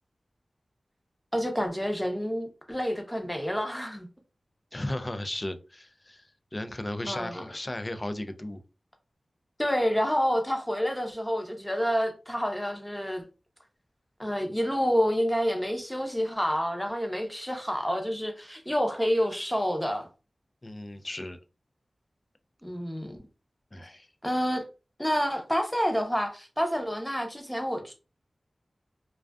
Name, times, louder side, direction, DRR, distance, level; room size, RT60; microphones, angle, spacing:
voice 1, 1.3-4.1 7.1-7.5 9.6-13.2 14.2-20.1 22.6-23.2 24.2-24.6 25.0-27.9, equal, 5° left, 0.7 m, -28 dB
voice 2, 4.7-8.6 20.6-21.4 23.7-24.1, left 1 dB, 35° left, 0.4 m, -35 dB
2.3 x 2.2 x 2.3 m
cardioid pair, 45°, 0 cm